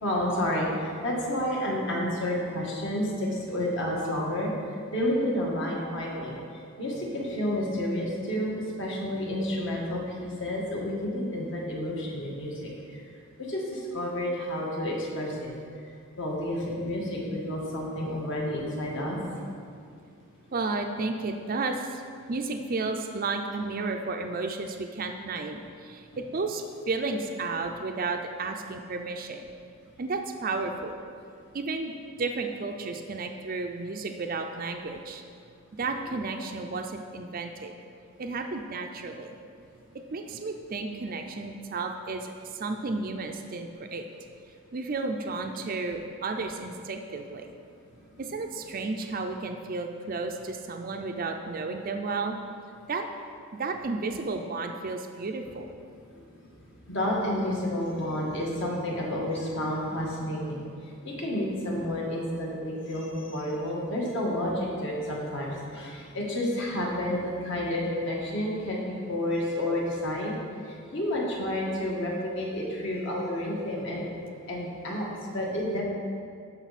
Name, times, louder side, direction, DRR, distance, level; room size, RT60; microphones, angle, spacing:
voice 1, 0.0-4.5 4.9-6.4 6.8-12.7 13.4-15.5 16.2-19.2 56.9-60.6 61.0-70.3 70.7-74.1 74.5-75.0 75.3-75.8, left 1 dB, 55° left, -3 dB, 1.7 m, -30 dB
voice 2, 20.5-22.0 22.3-29.5 30.0-31.0 31.5-31.9 32.2-35.2 35.7-37.7 38.2-39.4 40.1-44.1 44.7-47.5 48.2-52.4 52.9-53.1 53.5-55.7, right 3 dB, 40° right, 4 dB, 0.4 m, -32 dB
13.0 x 5.2 x 4.1 m, 2.4 s
head